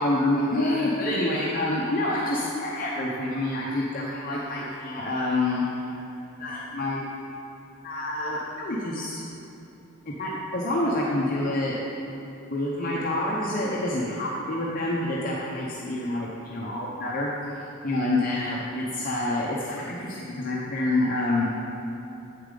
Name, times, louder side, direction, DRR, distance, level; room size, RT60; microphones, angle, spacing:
voice 1, 0.0-5.9 6.4-7.0 7.8-9.2 10.2-11.7 12.5-21.4, left 1 dB, 40° left, -5 dB, 0.7 m, -27 dB
8.2 x 6.8 x 3.8 m, 2.9 s
head